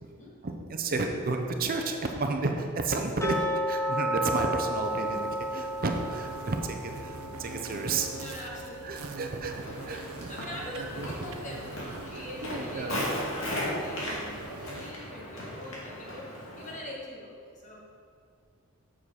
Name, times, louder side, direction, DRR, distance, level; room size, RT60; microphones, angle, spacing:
voice 1, 0.4-8.1 8.8-9.5 9.9-10.3 12.1-13.1, right 3 dB, 45° right, 4 dB, 0.6 m, -32 dB
sound 1, 3.2-10.1 10.3-10.4 10.9-11.0 11.6-11.7, equal, 15° left, 0.6 m, -33 dB
sound 2, 4.8-14.9, right 3 dB, 90° right, 0.6 m, -44 dB
voice 2, 8.1-9.2 10.2-17.8, left 1 dB, 35° left, -3 dB, 1.7 m, -43 dB
Walk footsteps, 9.4-16.8, left 1 dB, 65° left, 2.2 m, -37 dB
7.3 x 7.2 x 4.8 m, 2.3 s
head